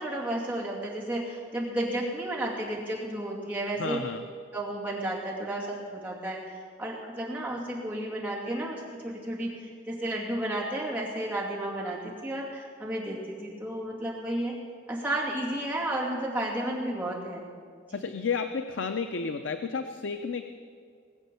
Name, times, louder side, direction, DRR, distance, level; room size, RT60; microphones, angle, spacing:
voice 1, 0.0-4.0 4.5-14.6 14.9-17.4 17.9-18.0, right 1 dB, 10° right, -5 dB, 2.4 m, -32 dB
voice 2, 3.8-4.2 17.9-20.4, left 5 dB, 80° left, 8 dB, 0.6 m, -32 dB
20.0 x 7.4 x 6.9 m, 2.2 s
head